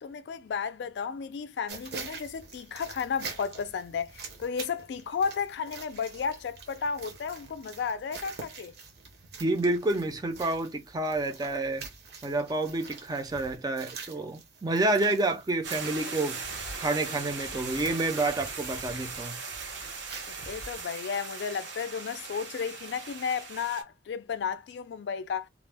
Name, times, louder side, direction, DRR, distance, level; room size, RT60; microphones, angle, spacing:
voice 1, 0.0-8.7 20.2-25.5, left 6 dB, 70° left, 0.3 m, -33 dB
sound 1, 1.7-20.8, right 4 dB, 60° right, 0.7 m, -46 dB
voice 2, 9.4-11.9 12.2-16.4 16.8-19.4, right 2 dB, 20° right, 0.4 m, -29 dB
sound 2, 15.6-23.8, right 4 dB, 90° right, 0.8 m, -39 dB
2.4 x 2.0 x 3.3 m
head